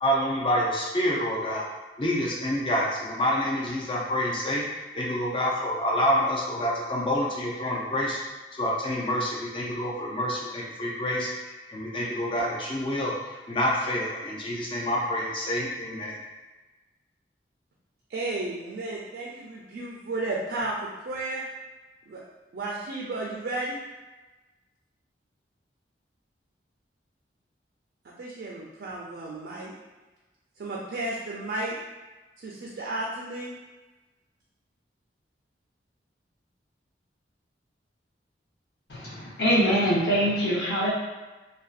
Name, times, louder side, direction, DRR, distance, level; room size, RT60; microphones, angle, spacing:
voice 1, 0.0-1.6 2.0-4.7 4.9-8.2 8.5-11.3 11.7-13.1 13.5-16.2, equal, 30° left, -4 dB, 0.4 m, -27 dB
voice 2, 18.1-20.7 21.1-21.4 22.1-22.2 22.5-23.8 28.2-29.7 30.6-31.8 32.4-33.5, right 2 dB, 65° right, -4 dB, 0.4 m, -33 dB
voice 3, 38.9-40.9, equal, 65° left, -9 dB, 0.8 m, -24 dB
2.6 x 2.2 x 2.4 m, 1.2 s
head